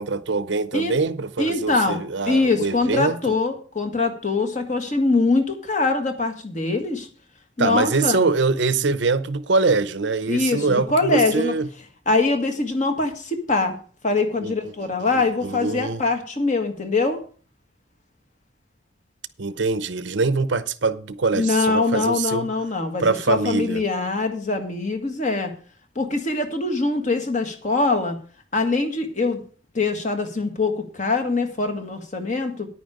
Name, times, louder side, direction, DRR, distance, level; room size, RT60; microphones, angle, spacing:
voice 1, 0.0-3.4 7.6-11.7 14.4-14.5 15.4-16.0 19.4-22.5 23.0-23.8, right 4 dB, 65° right, 0.7 m, -23 dB
voice 2, 1.4-2.0 2.3-7.1 7.6-8.3 10.3-11.5 12.1-13.8 14.0-17.2 21.3-25.5 25.9-28.2 28.5-29.4 29.7-32.7, left 3 dB, 40° left, 1.7 m, -23 dB
9.9 x 9.3 x 4.9 m
head